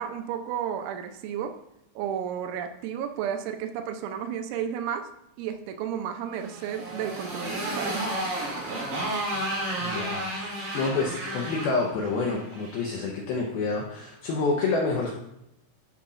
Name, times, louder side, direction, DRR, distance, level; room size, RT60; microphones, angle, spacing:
voice 1, 0.0-1.5 2.0-5.1 5.4-8.3, right 8 dB, 80° right, 6 dB, 2.9 m, -32 dB
Motorcycle, 6.4-12.8, right 1 dB, 60° right, 4.2 m, -32 dB
voice 2, 9.8-15.1, left 3 dB, 80° left, -1 dB, 2.2 m, -28 dB
14.0 x 5.8 x 2.5 m, 0.85 s
omnidirectional pair, 5.6 m